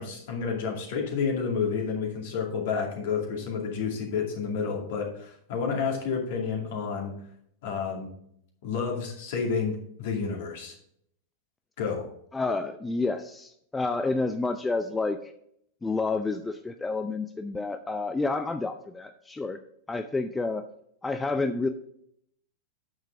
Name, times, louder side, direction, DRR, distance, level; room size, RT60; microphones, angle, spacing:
voice 1, 0.0-7.1 7.6-8.1 8.6-10.8 11.8-12.1, left 5 dB, 55° left, 1 dB, 2.4 m, -30 dB
voice 2, 12.3-15.3 15.8-19.6 19.9-20.6 21.0-21.7, left 3 dB, 10° left, 8 dB, 0.5 m, -29 dB
9.0 x 6.7 x 3.8 m, 0.70 s
figure-of-eight pair, 90°, 0 cm